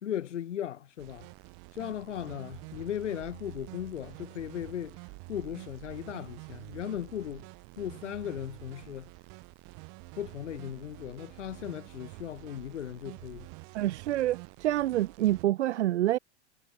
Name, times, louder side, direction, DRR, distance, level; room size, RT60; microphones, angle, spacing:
voice 1, 0.0-1.3 1.7-7.5 7.8-9.1 10.1-13.5, left 10 dB, 85° left, 4.1 m, -37 dB
sound 1, 1.0-15.4, right 36 dB, 40° right, 1.8 m, -48 dB
voice 2, 13.7-16.2, right 14 dB, 70° right, 1.1 m, -27 dB
hypercardioid pair, 135°, 35 cm